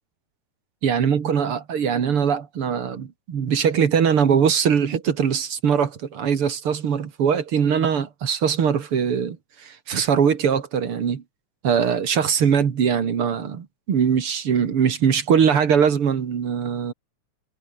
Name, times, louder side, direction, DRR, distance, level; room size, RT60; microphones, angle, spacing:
voice 1, 0.8-11.2 11.6-16.9, right 7 dB, 50° right, 2.6 m, -21 dB
omnidirectional pair, 3.6 m